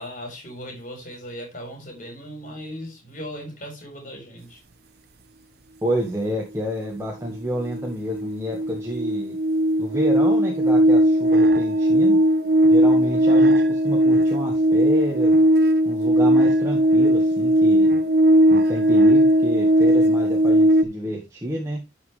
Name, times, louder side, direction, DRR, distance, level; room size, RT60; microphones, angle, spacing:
voice 1, 0.0-4.6, equal, 40° left, 4.2 m, -37 dB
voice 2, 5.8-9.4 9.8-12.2 12.7-15.3 15.8-17.9 18.5-21.8, equal, 15° right, 1.6 m, -29 dB
sound 1, 7.3-7.4 7.6-20.8, right 1 dB, 55° right, 0.7 m, -18 dB
12.0 x 5.6 x 3.3 m
head